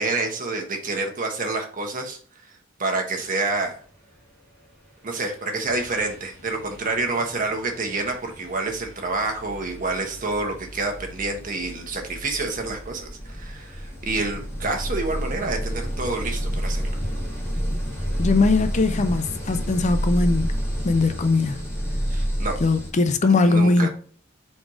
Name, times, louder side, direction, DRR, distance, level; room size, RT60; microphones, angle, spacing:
voice 1, 0.0-3.8 5.0-17.0 22.1-22.6 23.4-23.9, right 3 dB, 40° right, 1.2 m, -28 dB
sound 1, 5.1-5.3 5.6-22.9, equal, 15° left, 2.3 m, -30 dB
voice 2, 18.2-20.5 20.8-21.6 22.6-23.9, left 3 dB, 35° left, 0.4 m, -20 dB
4.6 x 4.2 x 4.8 m
head